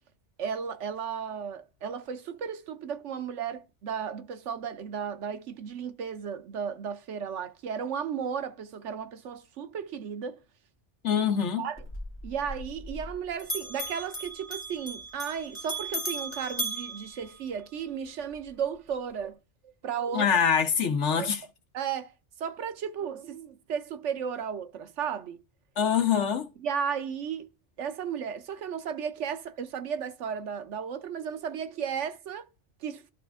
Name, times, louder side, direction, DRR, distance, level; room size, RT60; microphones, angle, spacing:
voice 1, 0.4-10.4 11.6-11.8 12.2-19.4 19.6-20.3 21.2-21.3 21.7-25.4 26.6-27.5 27.8-32.5 32.8-33.0, right 7 dB, 90° right, 1.1 m, -34 dB
voice 2, 11.0-11.7 20.1-21.4 25.8-26.5, left 7 dB, 80° left, 1.4 m, -24 dB
Bell, 11.8-13.1 13.4-17.9, right 1 dB, 10° left, 2.6 m, -37 dB
11.5 x 4.2 x 3.6 m
omnidirectional pair, 1.2 m